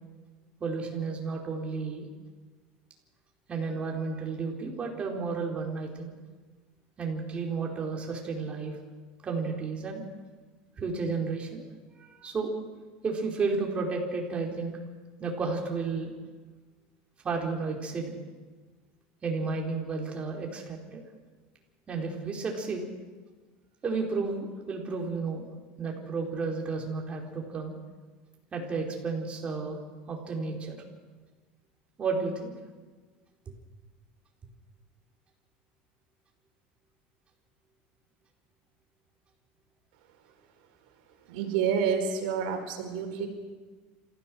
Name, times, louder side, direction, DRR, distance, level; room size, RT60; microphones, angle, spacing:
voice 1, 0.6-2.1 3.5-6.1 7.0-8.8 9.2-10.0 10.8-11.6 12.0-12.5 13.0-14.8 15.2-16.1 17.2-18.1 19.2-21.0 21.9-22.8 23.8-25.5 25.8-27.7 28.5-29.8 30.1-30.8 32.0-32.5, right 4 dB, 25° right, 0 dB, 4.6 m, -32 dB
voice 2, 41.3-43.3, right 7 dB, 80° right, 4 dB, 4.3 m, -28 dB
27.5 x 16.0 x 6.3 m, 1.4 s
supercardioid pair, 135°, 5 cm